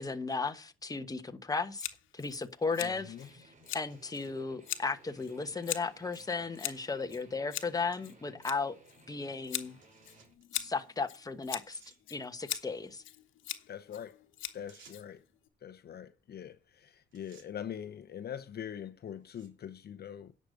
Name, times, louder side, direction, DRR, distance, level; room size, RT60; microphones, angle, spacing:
voice 1, 0.0-1.9 2.1-3.3 3.7-8.8 9.1-9.7 10.5-11.8 12.1-13.0, left 4 dB, 20° left, 1.1 m, -35 dB
Scissors, 1.8-15.5, left 12 dB, 80° left, 1.2 m, -42 dB
Guitar, 2.7-10.3, right 2 dB, 40° right, 3.0 m, -60 dB
voice 2, 2.8-3.3 13.7-14.2 14.5-15.2 15.6-20.3, left 9 dB, 55° left, 0.8 m, -43 dB
sound 1, 3.5-4.4 5.2-5.3 6.1-6.3 6.7-6.8 7.9-8.0 8.4-8.5 9.8-10.5 11.2-11.3 11.7-12.0 14.7-15.2 16.6-16.8 17.1-17.5 18.3-18.6 19.2-19.6, right 5 dB, 70° right, 3.4 m, -61 dB
10.5 x 6.6 x 6.4 m
cardioid pair, 90°, 20 cm